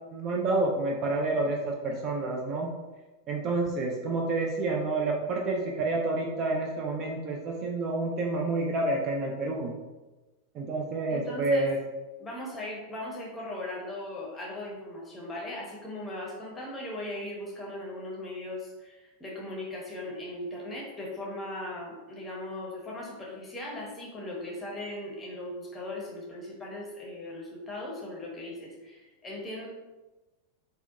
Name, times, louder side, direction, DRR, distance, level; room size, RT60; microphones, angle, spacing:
voice 1, 0.1-2.7 3.3-9.7 10.5-11.8, right 2 dB, 35° right, -1 dB, 0.3 m, -29 dB
voice 2, 11.1-11.7 12.2-29.7, left 1 dB, 15° left, -3 dB, 0.7 m, -38 dB
2.6 x 2.1 x 2.3 m, 1.1 s
figure-of-eight pair, 90°, 0 cm